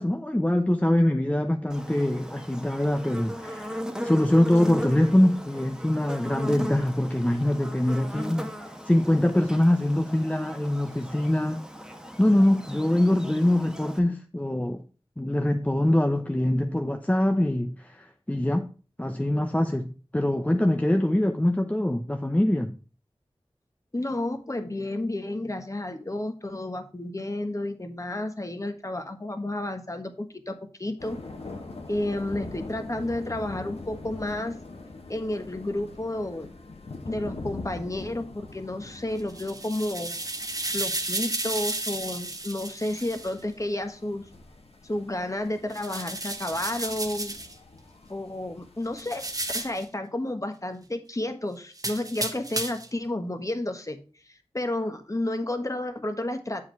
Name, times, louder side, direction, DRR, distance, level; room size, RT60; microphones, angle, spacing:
voice 1, 0.0-11.6 12.2-14.8 15.2-18.7 19.0-22.8, left 1 dB, 15° left, 0.7 m, -24 dB
Buzz, 1.7-14.0, equal, 5° right, 1.2 m, -38 dB
voice 2, 23.9-31.2 31.9-34.6 35.1-36.5 37.1-40.1 40.7-44.2 44.8-47.4 48.1-49.2 49.5-54.0 54.5-56.6, left 1 dB, 30° left, 1.4 m, -31 dB
sound 1, 31.0-49.8, left 3 dB, 75° left, 1.5 m, -43 dB
sound 2, 39.2-43.3 45.7-47.5 49.0-49.8 51.8-52.9, right 2 dB, 35° right, 1.1 m, -33 dB
7.6 x 4.9 x 4.6 m
cardioid pair, 40°, 10 cm